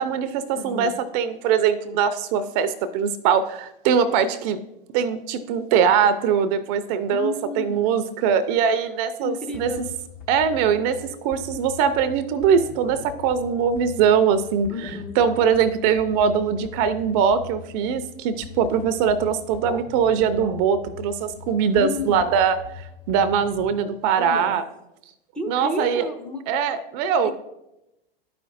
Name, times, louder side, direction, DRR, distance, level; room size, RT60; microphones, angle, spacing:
voice 1, 0.0-4.6 4.9-9.7 10.3-24.6 25.5-26.1 26.5-27.3, right 7 dB, 45° right, 11 dB, 0.5 m, -22 dB
voice 2, 0.6-0.9 7.1-7.9 9.2-9.9 14.7-15.2 21.7-22.2 24.2-24.6 25.4-26.4 27.2-27.3, left 3 dB, 5° left, 5 dB, 0.6 m, -31 dB
sound 1, 9.5-23.8, left 7 dB, 45° left, 1.3 m, -42 dB
12.0 x 5.1 x 2.5 m, 0.89 s
hypercardioid pair, 105°, 29 cm